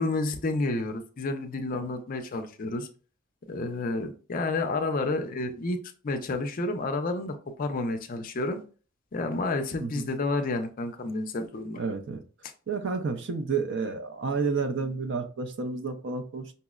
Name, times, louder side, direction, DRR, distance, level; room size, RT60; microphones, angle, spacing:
voice 1, 0.0-2.9 3.5-5.8 6.0-8.6 9.1-11.8, left 2 dB, 40° left, 0.4 m, -30 dB
voice 2, 11.8-12.2 12.7-16.5, right 4 dB, 55° right, 0.5 m, -30 dB
5.4 x 2.0 x 2.3 m
head